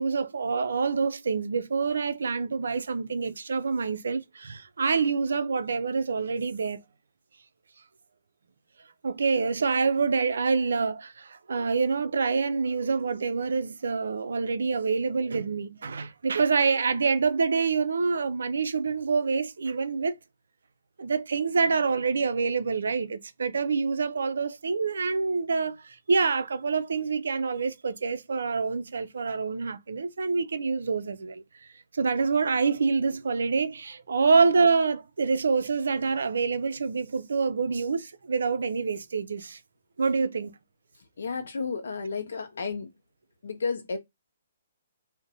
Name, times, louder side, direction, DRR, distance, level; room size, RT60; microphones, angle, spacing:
voice 1, 0.0-6.8 9.0-20.2 21.0-31.4 31.9-39.6 40.0-40.5, right 4 dB, 75° right, 0.4 m, -26 dB
voice 2, 40.9-42.9 43.4-44.0, left 4 dB, 70° left, 0.5 m, -32 dB
2.6 x 2.1 x 4.0 m
hypercardioid pair, 135°, 0 cm